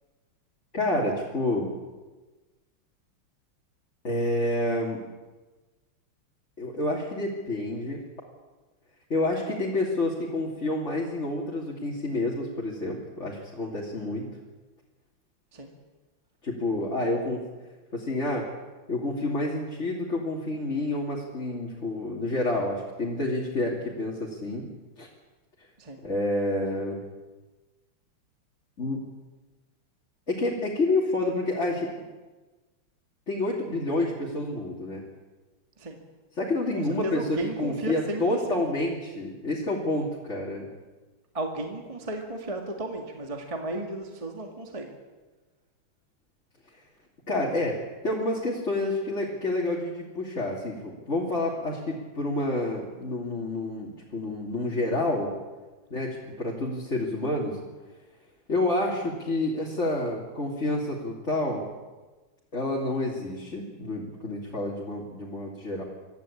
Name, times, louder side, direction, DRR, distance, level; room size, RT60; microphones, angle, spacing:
voice 1, 0.7-1.7 4.0-5.0 6.6-8.0 9.1-14.3 16.4-17.4 17.9-18.5 18.9-24.7 25.0-25.1 26.0-27.0 28.8-29.0 30.3-31.9 33.3-35.0 36.4-40.7 47.3-55.3 55.9-57.6 58.5-61.6 62.5-65.8, left 2 dB, 30° left, -4 dB, 3.1 m, -29 dB
voice 2, 36.7-38.6 41.3-44.9, right 2 dB, 15° right, 3 dB, 1.9 m, -34 dB
25.0 x 14.5 x 8.6 m, 1.2 s
omnidirectional pair, 2.3 m